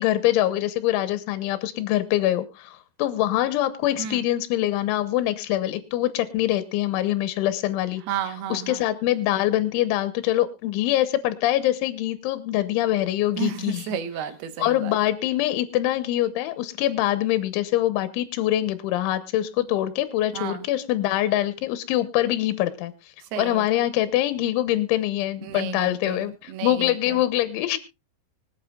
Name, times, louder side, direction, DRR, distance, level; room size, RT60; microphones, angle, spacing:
voice 1, 0.0-14.0 14.6-22.9 23.4-27.8, left 14 dB, 80° left, 11 dB, 3.4 m, -24 dB
voice 2, 8.1-8.8 13.4-15.0 20.3-20.6 23.3-23.6 25.4-26.2 26.5-26.7, right 10 dB, 70° right, 9 dB, 2.7 m, -32 dB
25.0 x 8.6 x 2.3 m, 0.24 s
omnidirectional pair, 5.4 m